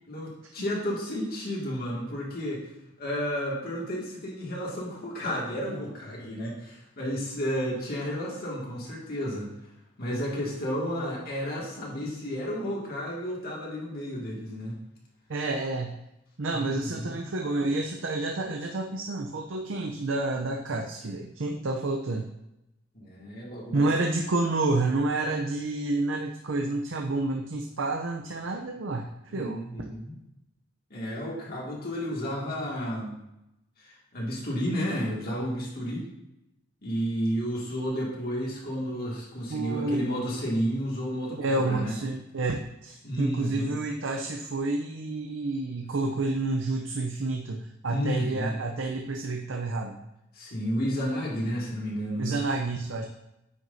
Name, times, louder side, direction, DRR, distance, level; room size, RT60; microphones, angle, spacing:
voice 1, 0.1-2.6 3.0-9.5 10.0-14.8 16.5-17.2 20.7-20.8 22.9-24.1 29.3-30.3 30.9-33.2 33.8-36.1 36.8-42.0 43.0-43.8 47.9-48.5 50.3-52.4, equal, 50° left, -4 dB, 2.2 m, -32 dB
voice 2, 15.3-16.0 16.4-22.3 23.7-29.1 29.3-29.6 39.5-40.1 41.4-50.0 52.2-53.1, right 2 dB, 75° right, 2 dB, 0.6 m, -29 dB
9.2 x 6.2 x 2.7 m, 0.88 s
head